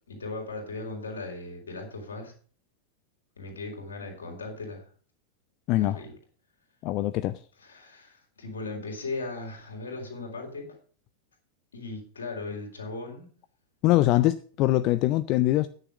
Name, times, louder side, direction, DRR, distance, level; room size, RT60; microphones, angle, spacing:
voice 1, 0.1-2.3 3.4-4.9 5.7-6.1 7.6-10.7 11.7-13.3, left 3 dB, 70° left, 3.6 m, -37 dB
voice 2, 5.7-6.0 6.8-7.4 13.8-15.7, left 16 dB, 40° left, 0.4 m, -23 dB
9.9 x 6.7 x 6.5 m
figure-of-eight pair, 90°, 0 cm